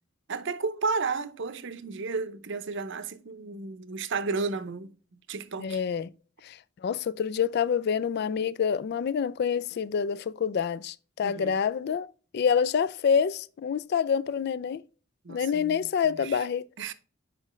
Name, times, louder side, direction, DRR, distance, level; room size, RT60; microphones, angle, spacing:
voice 1, 0.3-4.9 5.3-5.8 11.2-11.6 15.2-16.5 16.8-16.9, right 4 dB, 65° right, 0.7 m, -33 dB
voice 2, 5.6-6.1 6.4-14.8 15.3-16.7, left 7 dB, 55° left, 0.3 m, -27 dB
7.5 x 5.0 x 3.1 m
head